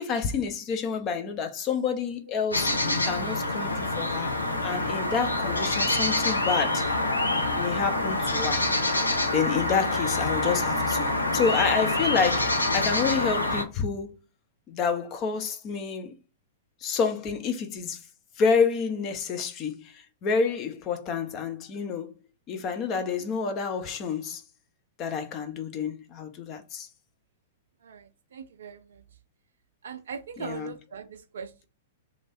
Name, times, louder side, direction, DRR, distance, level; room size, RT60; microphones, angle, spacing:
voice 1, 0.0-4.3 4.6-6.9 7.6-8.7 9.3-11.1 11.3-14.2 14.7-16.1 16.8-18.0 18.4-22.1 22.5-24.4 25.0-26.9 30.4-30.7, left 6 dB, 35° left, 0.7 m, -28 dB
sound 1, 2.5-13.6, left 2 dB, 85° left, 0.7 m, -26 dB
voice 2, 27.8-29.0 29.8-31.7, right 6 dB, 65° right, 0.4 m, -40 dB
3.1 x 2.6 x 4.1 m
figure-of-eight pair, 105°, 0 cm